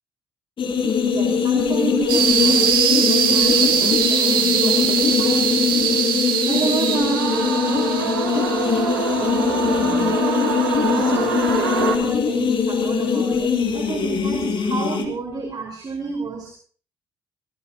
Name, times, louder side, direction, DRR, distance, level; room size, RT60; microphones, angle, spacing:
sound 1, 0.6-15.1, left 6 dB, 45° left, 2.9 m, -21 dB
voice 1, 1.0-5.7 6.4-10.2 10.8-16.5, right 4 dB, 35° right, 0 dB, 4.9 m, -30 dB
sound 2, 2.1-12.0, right 8 dB, 75° right, 1.8 m, -22 dB
27.0 x 14.5 x 3.0 m, 0.42 s
figure-of-eight pair, 45°, 12 cm